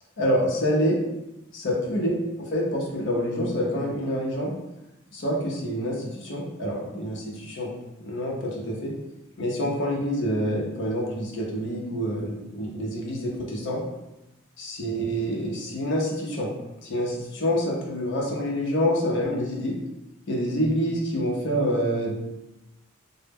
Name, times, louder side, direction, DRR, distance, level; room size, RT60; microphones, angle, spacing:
voice 1, 0.2-1.0 1.5-2.1 2.5-4.5 5.1-7.7 8.0-8.9 9.4-13.8 14.6-16.5 16.8-19.7 20.3-22.2, equal, 55° left, -3 dB, 0.6 m, -27 dB
2.0 x 2.0 x 3.4 m, 0.95 s
head